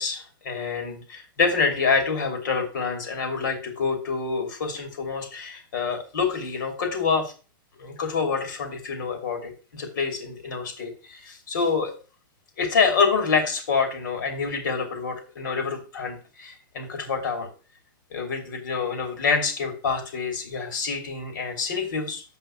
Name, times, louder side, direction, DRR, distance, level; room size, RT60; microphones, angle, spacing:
voice 1, 0.0-7.3 7.8-11.9 12.6-17.5 18.1-22.2, left 5 dB, 60° left, 6 dB, 3.0 m, -27 dB
7.8 x 5.7 x 6.0 m, 0.35 s
supercardioid pair, 175°, 12 cm